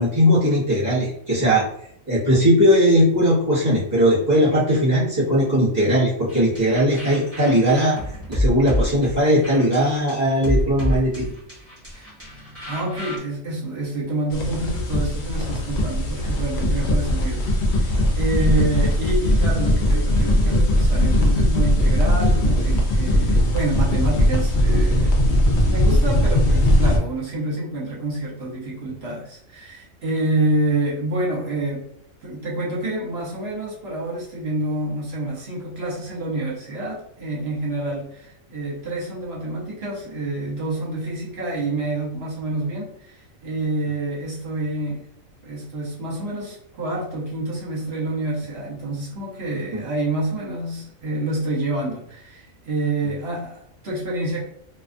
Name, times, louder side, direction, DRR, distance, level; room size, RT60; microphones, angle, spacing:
voice 1, 0.0-1.6 2.1-8.0 8.3-11.3 49.7-49.8, equal, 35° right, -8 dB, 1.2 m, -19 dB
sound 1, 6.3-13.2, equal, 10° right, 0.9 m, -28 dB
voice 2, 12.7-31.8 32.2-45.1 45.4-54.4, right 2 dB, 55° right, -5 dB, 1.1 m, -27 dB
sound 2, 14.3-27.0, left 1 dB, 60° left, 0.8 m, -19 dB
2.5 x 2.3 x 2.5 m, 0.69 s
omnidirectional pair, 1.4 m